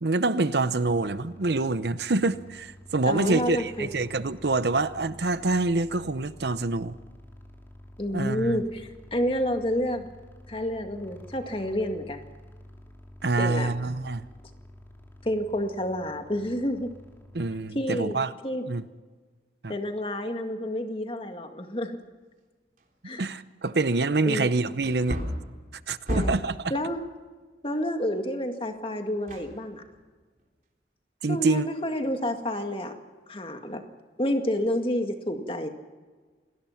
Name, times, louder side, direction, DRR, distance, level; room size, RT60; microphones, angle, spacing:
voice 1, 0.0-7.0 8.1-8.6 13.2-14.3 17.3-18.3 18.7-18.8 19.6-19.7 23.2-25.2 25.9-26.7 31.2-31.7, right 3 dB, 70° right, 0.8 m, -26 dB
sound 1, 0.9-17.6, left 1 dB, 15° left, 2.9 m, -49 dB
voice 2, 3.1-3.9 8.0-10.1 10.5-12.2 13.4-13.7 15.2-16.9 17.7-18.7 19.7-22.0 23.0-23.2 24.2-24.5 26.1-26.3 26.7-27.0 27.6-29.8 31.3-32.9 33.3-33.8 34.2-35.7, left 1 dB, 30° left, 2.0 m, -29 dB
Wood, 22.8-22.9 23.5-23.6 24.8-26.6 29.3-30.1 30.4-30.5, equal, 50° right, 3.7 m, -32 dB
27.5 x 19.5 x 5.9 m
head